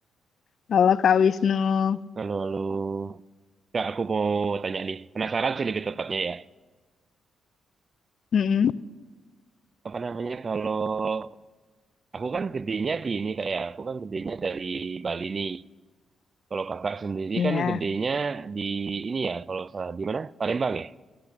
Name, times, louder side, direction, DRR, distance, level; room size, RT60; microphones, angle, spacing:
voice 1, 0.7-2.0 8.3-8.7 17.4-17.8, left 7 dB, 65° left, 0.4 m, -21 dB
voice 2, 2.2-3.2 3.7-6.5 9.8-11.3 12.1-15.6 16.5-20.9, right 4 dB, 45° right, 0.4 m, -29 dB
14.5 x 13.5 x 5.9 m
supercardioid pair, 60°, 0 cm